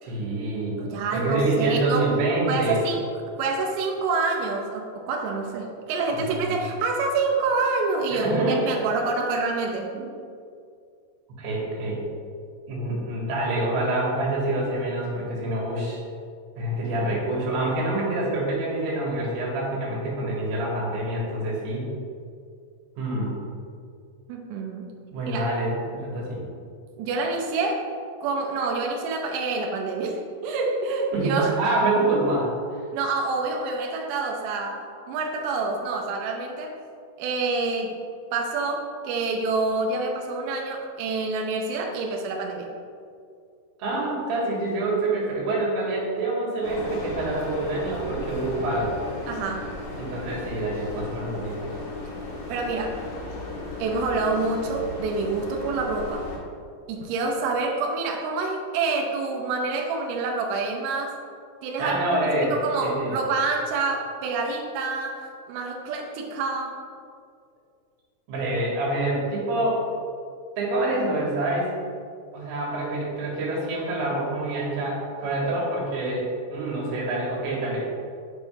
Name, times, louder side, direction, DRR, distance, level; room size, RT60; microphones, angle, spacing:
voice 1, 0.0-0.8 1.1-2.8 6.1-6.5 8.1-8.8 9.9-10.0 11.4-12.0 12.7-16.0 16.6-21.9 23.0-23.3 25.1-26.4 31.1-32.8 43.8-48.9 50.0-51.7 61.8-62.5 62.8-63.1 68.3-69.8 70.6-71.7 72.3-76.3 76.5-77.9, right 2 dB, 70° right, -5 dB, 3.7 m, -26 dB
voice 2, 0.8-2.0 2.5-3.0 3.4-9.9 24.3-24.9 25.2-25.5 27.0-27.9 28.2-31.6 32.9-36.7 37.2-38.0 38.3-42.7 49.3-49.7 52.5-53.0 53.8-56.3 56.9-61.2 61.6-66.8, right 3 dB, 85° right, 1 dB, 2.5 m, -27 dB
sound 1, 46.6-56.4, left 2 dB, 85° left, 1.6 m, -36 dB
8.6 x 6.3 x 3.5 m, 2.3 s
omnidirectional pair, 5.9 m